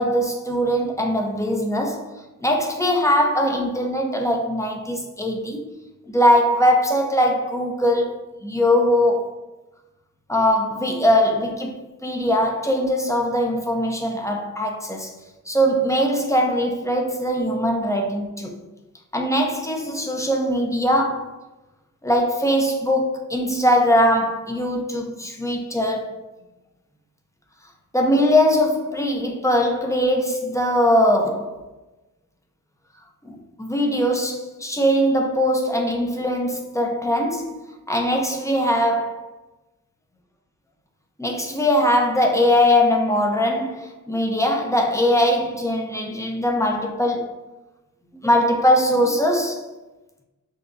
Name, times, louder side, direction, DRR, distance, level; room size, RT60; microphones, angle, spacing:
voice 1, 0.0-2.1 2.4-5.7 6.1-9.4 10.3-15.1 15.5-18.5 19.1-21.3 22.0-26.2 27.9-31.6 33.3-37.6 37.9-39.2 41.2-47.4 48.2-49.7, equal, 10° left, 0.8 m, -21 dB
6.5 x 2.3 x 2.7 m
cardioid pair, 55°, 35 cm